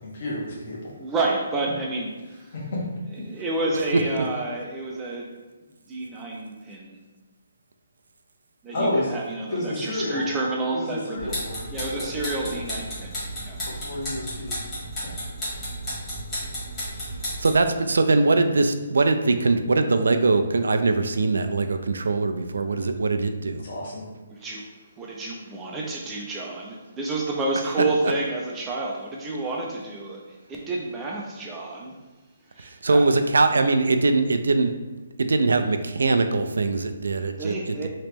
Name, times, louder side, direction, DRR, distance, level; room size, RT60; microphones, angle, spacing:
voice 1, 0.0-0.9 2.5-2.8 8.7-9.1 9.5-10.3 10.7-12.6 13.6-14.6 15.0-15.2 23.6-24.1 24.4-24.5, left 1 dB, 45° left, -4 dB, 1.0 m, -31 dB
voice 2, 1.0-2.5 3.2-5.3 5.9-7.0 8.6-11.3 11.7-13.6 24.3-24.7 25.0-31.9 32.5-33.0 37.4-37.9, right 2 dB, 10° right, -2 dB, 0.3 m, -30 dB
voice 3, 3.9-4.3 17.4-23.6 27.8-27.9 32.6-34.7 35.2-37.9, right 3 dB, 90° right, 8 dB, 0.3 m, -22 dB
Ticking Timer, 11.2-17.6, equal, 15° left, 1.3 m, -33 dB
3.1 x 2.9 x 3.4 m, 1.2 s
hypercardioid pair, 170°, 0 cm